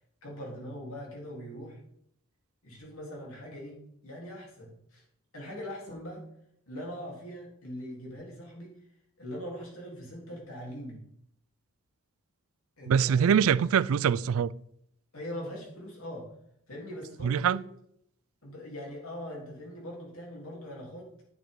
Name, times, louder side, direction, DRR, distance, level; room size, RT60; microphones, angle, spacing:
voice 1, 0.2-1.8 2.6-3.8 4.0-5.0 5.3-6.2 6.7-8.7 9.2-11.0 12.8-13.3 15.1-16.3 16.7-17.6 18.4-21.1, equal, 75° left, 3.6 m, -41 dB
voice 2, 12.9-14.5 17.2-17.6, right 7 dB, 70° right, 0.3 m, -24 dB
9.7 x 8.6 x 3.9 m
head